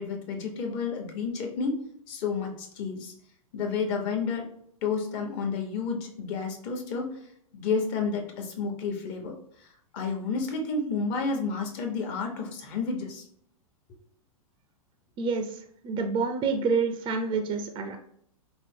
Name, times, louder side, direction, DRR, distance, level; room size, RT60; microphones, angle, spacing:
voice 1, 0.0-3.1 3.5-4.5 4.8-7.1 7.5-9.4 9.9-13.2, left 4 dB, 45° left, 2 dB, 1.1 m, -30 dB
voice 2, 15.2-15.6 15.8-18.0, right 4 dB, 25° right, 5 dB, 0.5 m, -27 dB
5.1 x 2.0 x 3.4 m, 0.67 s
hypercardioid pair, 110°, 18 cm